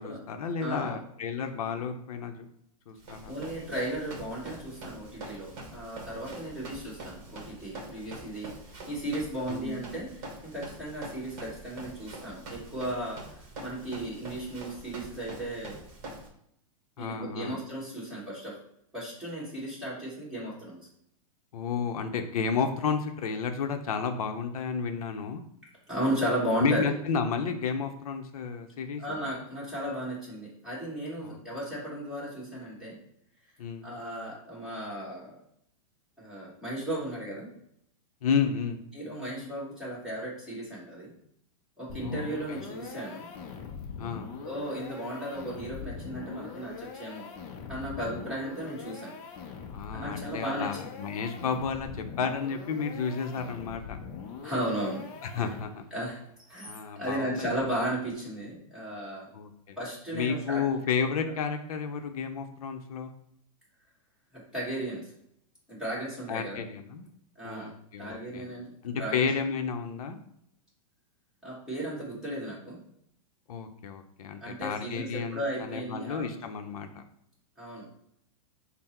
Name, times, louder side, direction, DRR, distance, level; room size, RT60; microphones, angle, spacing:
voice 1, 0.0-2.4 2.9-3.3 6.1-6.3 9.5-9.7 17.0-17.6 21.5-25.4 26.6-29.0 31.2-31.4 33.6-33.9 38.2-38.8 42.0-42.6 44.0-44.3 49.7-54.0 55.3-55.8 56.6-57.5 59.3-59.8 60.1-63.1 66.3-67.1 67.4-68.5 68.8-70.2 73.5-77.0, left 6 dB, 75° left, 6 dB, 0.6 m, -32 dB
voice 2, 0.6-1.0 3.2-8.5 8.9-13.3 13.6-15.8 17.0-18.6 18.9-20.8 21.7-21.8 25.9-26.9 29.0-33.0 33.8-35.4 36.2-37.5 38.9-41.1 41.8-43.3 44.4-47.3 47.7-49.1 49.9-50.9 54.4-55.1 55.3-55.4 55.9-56.2 56.5-59.3 59.8-60.7 64.3-65.1 65.7-66.6 67.4-67.7 68.0-68.7 69.0-69.3 71.4-72.8 74.4-76.4 77.6-77.9, right 1 dB, 5° right, -7 dB, 1.4 m, -35 dB
Run, 3.0-16.3, right 2 dB, 30° right, 1.0 m, -45 dB
sound 1, 41.9-56.0, left 6 dB, 25° left, 0.4 m, -42 dB
5.6 x 2.0 x 4.2 m, 0.74 s
supercardioid pair, 170°, 19 cm